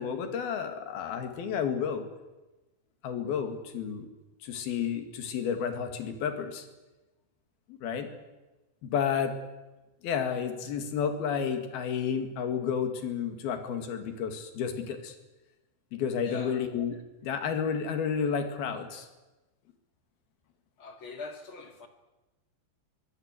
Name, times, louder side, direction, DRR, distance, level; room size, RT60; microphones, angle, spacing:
voice 1, 0.0-2.1 3.0-4.1 4.4-6.7 7.7-8.1 8.8-9.3 10.0-15.2 15.9-17.0 17.2-19.1, left 7 dB, 85° left, 4.1 m, -31 dB
voice 2, 16.2-16.6 16.9-17.0 20.8-21.9, left 4 dB, 40° left, 2.4 m, -43 dB
22.5 x 16.5 x 9.7 m
omnidirectional pair, 4.3 m